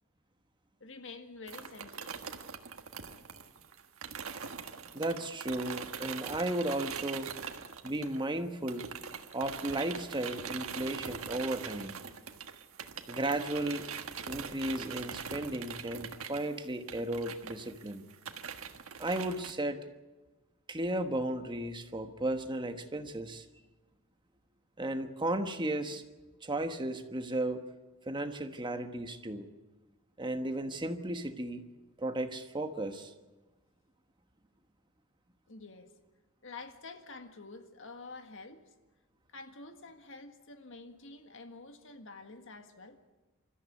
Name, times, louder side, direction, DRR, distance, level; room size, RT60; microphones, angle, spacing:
voice 1, 0.8-2.2 17.7-17.8 35.5-35.9 36.4-38.6 39.3-43.0, left 3 dB, 60° left, 1.9 m, -48 dB
Styrofoam flakes falling, 1.5-8.4 8.7-19.5, right 6 dB, 70° right, 1.5 m, -42 dB
voice 2, 4.9-7.3 7.8-8.9 9.3-11.9 13.1-13.9 14.3-18.0 19.0-19.8 20.7-23.4 24.8-26.0 26.4-27.6 28.1-29.5 30.2-31.6 32.0-33.1, right 1 dB, 20° right, 1.2 m, -34 dB
28.0 x 14.0 x 8.3 m
head